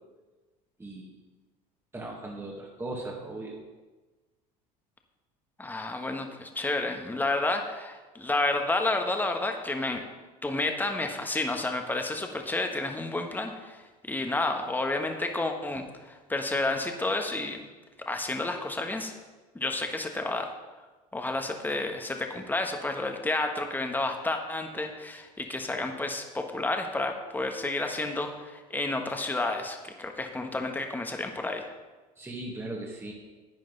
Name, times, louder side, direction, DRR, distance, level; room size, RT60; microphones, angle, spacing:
voice 1, 0.8-1.1 1.9-3.6 25.4-25.5 32.2-33.1, right 2 dB, 10° right, -2 dB, 1.8 m, -38 dB
voice 2, 5.6-10.0 10.4-17.6 18.0-19.1 19.5-20.5 21.1-31.7, left 2 dB, 10° left, 4 dB, 1.4 m, -30 dB
11.0 x 9.0 x 4.0 m, 1.2 s
hypercardioid pair, 85°, 20 cm